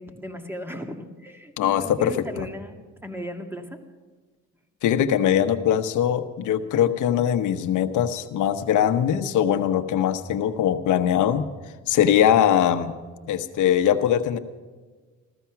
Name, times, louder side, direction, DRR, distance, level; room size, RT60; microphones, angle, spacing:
voice 1, 0.0-3.8, equal, 5° right, 5 dB, 2.0 m, -37 dB
voice 2, 1.6-2.5 4.8-11.5 11.9-12.9 13.3-14.4, left 9 dB, 80° left, 8 dB, 1.1 m, -21 dB
15.0 x 14.0 x 5.9 m, 1.4 s
cardioid pair, 90°, 30 cm